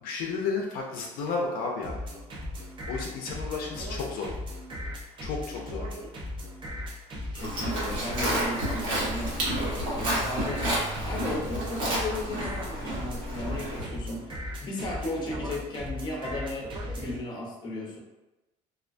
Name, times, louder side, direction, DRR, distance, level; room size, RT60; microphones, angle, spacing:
voice 1, 0.0-2.0 2.9-4.3 5.2-5.9, left 4 dB, 70° left, 0 dB, 0.4 m, -32 dB
sound 1, 1.8-17.2, left 1 dB, 30° right, 0.5 m, -37 dB
voice 2, 7.3-9.5 9.8-18.0, left 1 dB, 25° left, -2 dB, 0.6 m, -36 dB
Livestock farm animals working animals, 7.4-13.8, right 1 dB, 70° right, 1.1 m, -30 dB
2.3 x 2.1 x 2.5 m, 1.1 s
cardioid pair, 130°, 16 cm